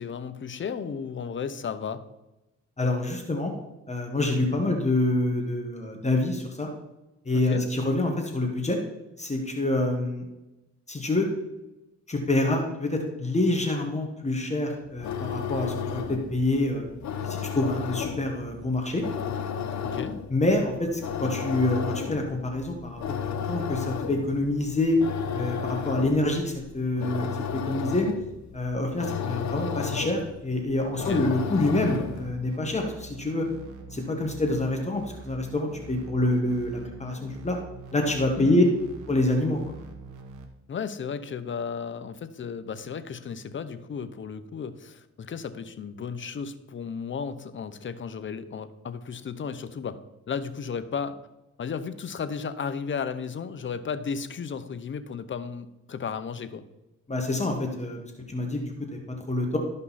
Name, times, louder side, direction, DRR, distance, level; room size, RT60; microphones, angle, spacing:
voice 1, 0.0-2.0 7.3-7.6 19.8-20.1 30.9-31.3 38.4-38.6 40.7-50.0 50.3-51.2 51.6-56.6, left 6 dB, 40° left, 12 dB, 0.8 m, -34 dB
voice 2, 2.8-3.5 3.9-6.7 7.2-8.8 9.2-10.3 10.9-11.3 12.1-16.8 17.2-19.0 20.3-25.0 25.3-28.1 28.5-33.5 33.9-37.6 37.9-38.6 39.1-39.6 57.1-58.0 58.3-59.6, left 2 dB, 20° left, 2 dB, 1.5 m, -26 dB
sound 1, 14.9-32.4, left 7 dB, 65° left, 1.0 m, -33 dB
sound 2, 31.8-40.5, right 3 dB, 85° right, 1.3 m, -44 dB
13.0 x 5.3 x 4.2 m, 0.99 s
cardioid pair, 90°, 30 cm